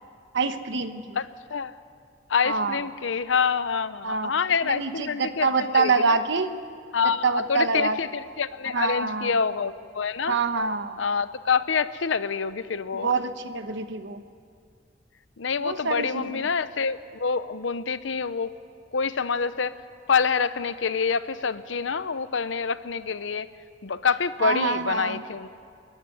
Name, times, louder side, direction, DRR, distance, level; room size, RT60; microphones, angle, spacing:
voice 1, 0.3-1.2 2.4-2.8 4.0-4.3 4.6-6.5 7.2-8.0 8.7-9.3 10.3-11.0 12.9-14.2 15.6-16.4 24.4-25.2, right 4 dB, 65° right, 9 dB, 1.1 m, -26 dB
voice 2, 1.2-1.7 2.3-5.5 5.7-6.2 6.9-10.4 11.0-13.1 15.4-18.5 18.9-19.7 20.1-23.5 23.8-25.5, left 5 dB, 70° left, 14 dB, 0.7 m, -26 dB
29.5 x 11.0 x 9.5 m, 2.2 s
head